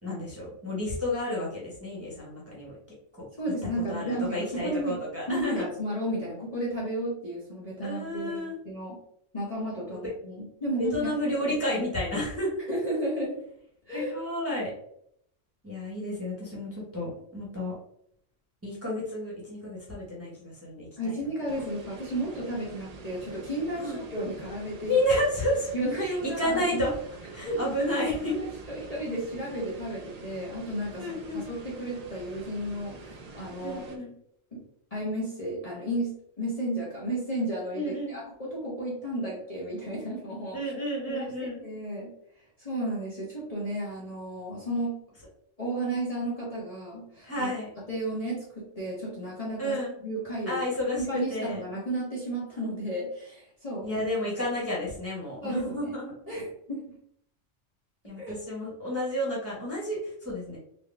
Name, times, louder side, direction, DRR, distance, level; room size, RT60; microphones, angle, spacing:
voice 1, 0.0-2.8 3.2-3.3 3.9-5.6 7.8-8.6 10.8-12.5 13.9-14.7 15.6-17.7 18.6-21.1 23.8-24.0 24.9-25.7 26.0-26.9 27.3-28.3 31.0-31.4 33.6-34.1 37.7-38.2 40.5-41.6 47.2-47.7 49.6-49.9 50.5-51.6 53.8-56.1 58.0-60.6, left 1 dB, 10° right, -6 dB, 1.1 m, -31 dB
voice 2, 3.4-5.0 5.3-9.0 9.3-11.1 11.7-11.8 12.7-13.4 13.9-14.1 21.0-25.0 25.7-26.8 27.4-27.6 28.0-33.8 34.5-34.6 34.9-40.7 41.1-41.3 41.6-42.1 42.6-44.9 45.6-47.5 47.9-50.7 51.0-53.9 55.4-55.9 56.3-56.9 58.2-58.3, right 1 dB, 30° left, -7 dB, 1.1 m, -33 dB
sound 1, 21.5-34.0, right 3 dB, 75° right, 0.3 m, -46 dB
4.0 x 2.4 x 3.4 m, 0.70 s
omnidirectional pair, 1.3 m